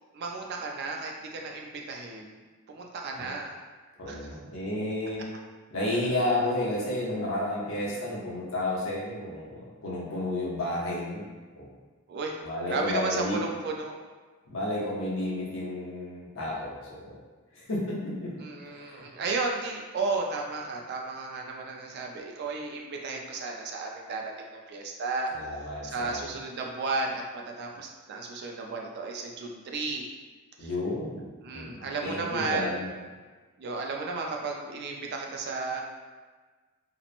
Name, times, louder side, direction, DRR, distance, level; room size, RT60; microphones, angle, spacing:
voice 1, 0.1-2.4 2.7-3.5 4.1-4.3 7.9-8.0 12.1-12.4 12.7-13.9 18.4-25.3 25.8-30.1 30.6-30.7 31.4-32.8 33.6-35.8, right 3 dB, 50° right, 1 dB, 0.3 m, -33 dB
voice 2, 4.0-5.2 5.7-11.3 11.6-11.7 12.4-13.4 14.5-17.2 17.5-18.3 18.8-19.0 25.4-26.2 30.6-31.2 31.5-32.9, left 1 dB, 70° left, -5 dB, 0.7 m, -31 dB
2.8 x 2.0 x 2.5 m, 1.4 s
head